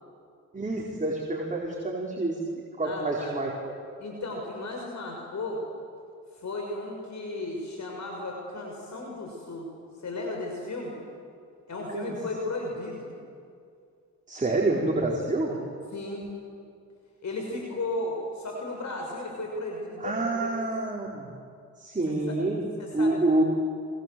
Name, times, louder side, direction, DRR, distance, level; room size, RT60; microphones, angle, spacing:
voice 1, 0.5-2.4 2.8-3.7 11.9-12.2 14.3-15.6 20.0-21.3 21.8-22.7 22.9-23.4, right 2 dB, 20° right, -2 dB, 5.0 m, -27 dB
voice 2, 2.8-3.3 4.0-5.6 6.3-9.7 10.0-11.0 11.7-13.1 15.9-16.3 17.2-20.6 22.1-22.4 22.8-23.2, left 2 dB, 50° left, 0 dB, 6.3 m, -35 dB
27.5 x 26.0 x 8.0 m, 2.3 s
supercardioid pair, 55°, 36 cm